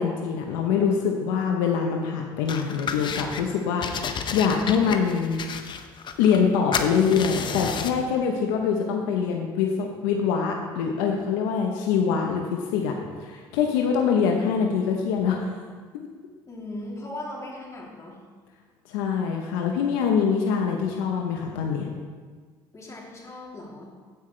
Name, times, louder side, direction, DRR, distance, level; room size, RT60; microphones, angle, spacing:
voice 1, 0.0-5.4 6.2-12.9 13.2-15.5 18.9-21.9, left 6 dB, 85° left, 2 dB, 0.9 m, -24 dB
sound 1, 2.5-3.4 3.8-6.5 6.7-8.0, left 6 dB, 45° left, 0.7 m, -31 dB
voice 2, 16.5-18.2 22.7-23.9, left 1 dB, 30° left, -3 dB, 2.9 m, -38 dB
15.5 x 5.7 x 3.2 m, 1.5 s
supercardioid pair, 80°, 11 cm